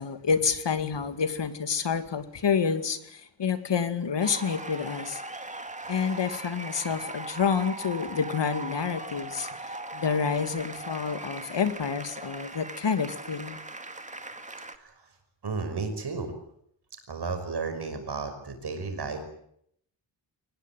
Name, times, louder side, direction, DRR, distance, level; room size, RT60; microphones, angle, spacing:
voice 1, 0.0-5.2 5.9-13.6, left 6 dB, 65° left, 10 dB, 2.3 m, -28 dB
sound 1, 4.2-14.8, right 2 dB, 15° right, 1.9 m, -39 dB
voice 2, 14.7-15.1 15.4-16.3 17.1-19.2, right 4 dB, 60° right, 7 dB, 5.7 m, -33 dB
23.5 x 19.5 x 9.2 m, 0.71 s
wide cardioid pair, 140°, 46 cm